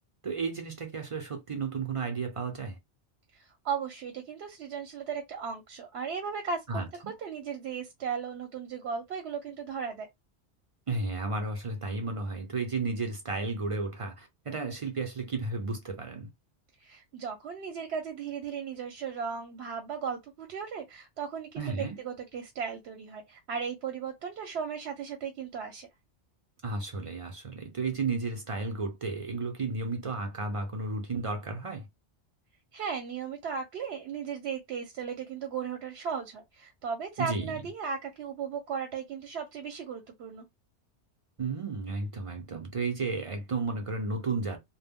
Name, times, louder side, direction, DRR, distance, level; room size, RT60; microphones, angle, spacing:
voice 1, 0.2-2.8 6.7-7.1 10.9-16.3 21.6-22.0 26.6-31.8 37.2-37.6 41.4-44.6, right 3 dB, 40° right, 0.5 m, -33 dB
voice 2, 3.3-10.1 16.8-25.9 32.7-40.4, right 6 dB, 75° right, 0.8 m, -36 dB
2.1 x 2.0 x 3.5 m
omnidirectional pair, 1.1 m